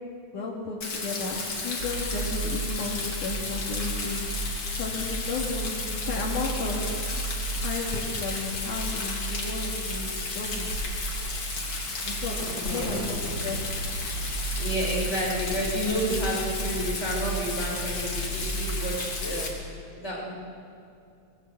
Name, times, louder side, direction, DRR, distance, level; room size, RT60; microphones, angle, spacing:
voice 1, 0.3-4.2 4.8-7.0 7.6-10.7 12.0-12.4 12.6-13.8, left 3 dB, 80° left, -3 dB, 3.5 m, -33 dB
Rain, 0.8-19.5, left 3 dB, 45° left, 3.5 m, -33 dB
sound 1, 1.8-19.3, right 3 dB, 45° right, 2.2 m, -35 dB
voice 2, 12.4-13.1 14.0-14.2 14.6-19.7 19.9-20.3, equal, 20° left, -3 dB, 5.3 m, -31 dB
20.0 x 19.5 x 8.1 m, 2.5 s
omnidirectional pair, 3.5 m